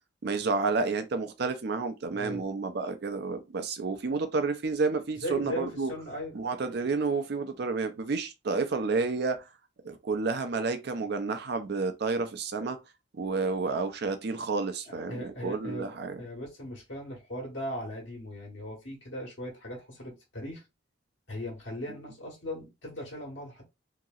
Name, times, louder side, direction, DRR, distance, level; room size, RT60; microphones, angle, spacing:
voice 1, 0.2-5.9 6.3-9.4 9.8-12.8 13.2-16.2, right 4 dB, 55° right, 0.5 m, -30 dB
voice 2, 2.1-2.5 5.1-6.3 14.9-15.9 16.2-20.6 21.3-23.6, left 1 dB, 75° left, 1.3 m, -38 dB
2.9 x 2.8 x 2.4 m
head